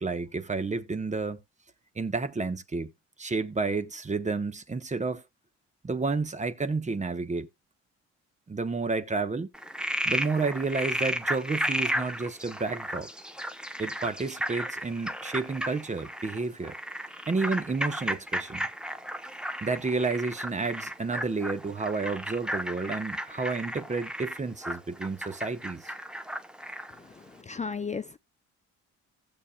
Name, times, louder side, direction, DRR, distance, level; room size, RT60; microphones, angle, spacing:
voice 1, 0.0-1.4 2.0-2.9 3.2-5.2 5.8-7.5 8.5-9.5 10.0-13.1 13.8-16.8 17.3-18.7 19.6-25.9, right 4 dB, 25° right, 1.1 m, -30 dB
Frog, 9.5-27.0, equal, 5° right, 0.9 m, -34 dB
voice 2, 27.2-28.2, left 5 dB, 25° left, 0.5 m, -35 dB
16.0 x 7.1 x 2.3 m
cardioid pair, 90°, 30 cm